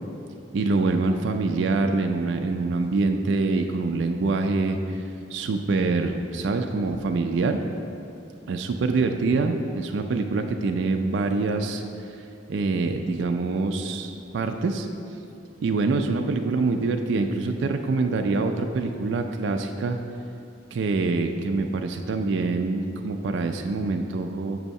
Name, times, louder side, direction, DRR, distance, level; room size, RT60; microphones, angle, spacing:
voice 1, 0.5-5.0 5.3-7.6 8.5-11.8 12.5-14.9 15.6-20.0 20.7-24.6, right 3 dB, 70° right, 5 dB, 0.4 m, -25 dB
7.8 x 2.7 x 5.3 m, 2.7 s
head